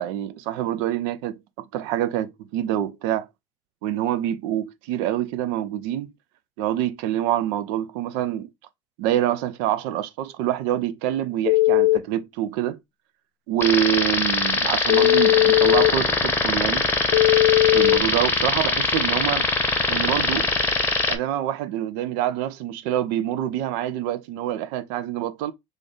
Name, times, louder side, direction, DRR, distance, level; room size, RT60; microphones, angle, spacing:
voice 1, 0.0-1.4 1.7-3.3 3.8-6.1 6.6-8.5 9.0-12.8 13.5-16.9 17.7-19.5 19.9-20.5 21.1-25.5, right 12 dB, 70° right, 0.6 m, -26 dB
Telephone, 11.4-12.0 14.9-15.9 17.1-18.0, left 18 dB, 85° left, 0.4 m, -17 dB
sound 1, 13.6-21.2, left 3 dB, 15° left, 0.9 m, -22 dB
3.3 x 2.5 x 3.9 m
hypercardioid pair, 80°, 16 cm